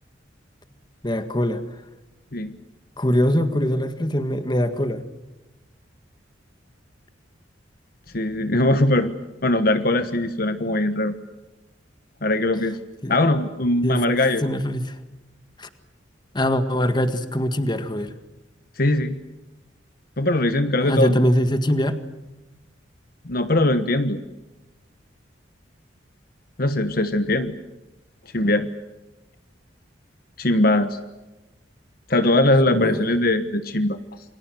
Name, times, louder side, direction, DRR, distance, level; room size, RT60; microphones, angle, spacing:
voice 1, 1.0-1.6 3.0-5.0 8.5-8.6 13.0-13.1 13.8-14.0 14.4-15.0 15.6-15.7 16.3-18.1 20.8-22.0 32.7-33.1, equal, 25° left, 9 dB, 1.8 m, -22 dB
voice 2, 8.1-9.1 9.4-11.1 12.2-12.8 13.1-14.4 18.8-19.2 20.2-21.2 23.2-24.2 26.6-27.5 28.3-28.7 30.4-31.0 32.1-34.0, left 1 dB, 50° left, 9 dB, 1.2 m, -21 dB
28.5 x 23.5 x 7.7 m, 1.0 s
head